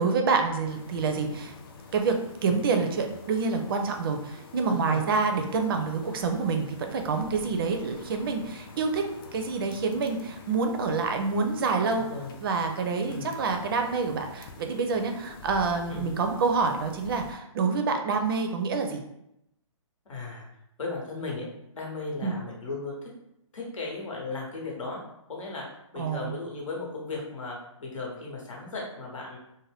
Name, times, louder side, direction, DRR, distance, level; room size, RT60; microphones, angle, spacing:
voice 1, 0.0-1.5 1.9-9.0 9.3-12.1 12.4-19.0 22.2-22.4 26.0-26.3, right 4 dB, 45° right, 5 dB, 0.4 m, -27 dB
sound 1, 0.7-17.3, left 4 dB, 45° left, 0.4 m, -48 dB
voice 2, 4.7-5.0 7.4-7.5 11.9-12.3 13.1-13.4 15.9-16.1 20.0-20.4 20.8-21.5 21.7-23.0 23.5-25.0 25.3-25.7 25.9-29.4, left 3 dB, 80° left, -2 dB, 1.1 m, -36 dB
2.5 x 2.1 x 3.3 m, 0.82 s
hypercardioid pair, 145°, 17 cm